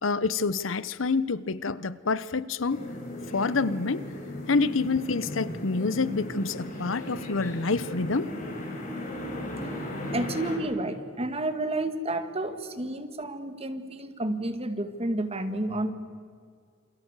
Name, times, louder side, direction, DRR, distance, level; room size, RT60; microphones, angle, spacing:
voice 1, 0.0-2.8 3.3-4.0 4.5-8.3, left 4 dB, 70° left, 17 dB, 0.9 m, -27 dB
sound 1, 2.7-10.6, left 1 dB, 40° left, 6.5 m, -36 dB
voice 2, 10.1-15.9, right 1 dB, 30° right, 9 dB, 1.9 m, -30 dB
28.0 x 26.0 x 8.2 m, 2.1 s
head